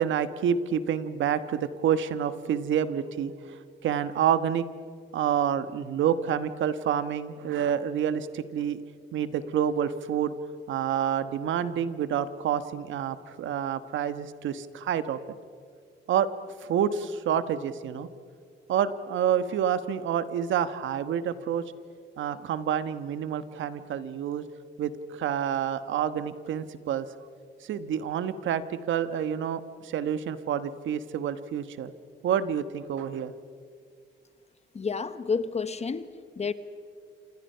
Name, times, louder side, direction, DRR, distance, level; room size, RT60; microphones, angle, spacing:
voice 1, 0.0-4.6 5.1-8.8 9.1-10.3 10.7-15.2 16.1-16.3 16.6-18.1 18.7-21.6 22.2-24.4 24.8-27.1 27.6-31.9 32.2-33.3, right 9 dB, 75° right, 13 dB, 1.3 m, -28 dB
voice 2, 34.7-36.1 36.4-36.5, left 5 dB, 35° left, 13 dB, 1.1 m, -29 dB
28.0 x 26.5 x 5.7 m, 2.2 s
cardioid pair, 90°, 20 cm